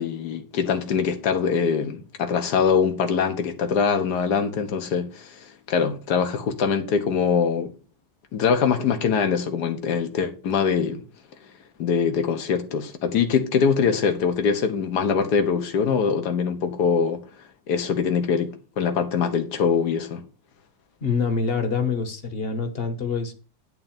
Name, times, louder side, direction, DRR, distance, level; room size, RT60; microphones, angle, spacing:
voice 1, 0.0-5.4 5.7-7.7 8.3-11.0 11.8-17.2 17.7-20.2, left 6 dB, 65° left, 1.8 m, -23 dB
voice 2, 21.0-23.3, left 5 dB, 35° left, 1.5 m, -25 dB
10.5 x 3.9 x 7.4 m
omnidirectional pair, 2.0 m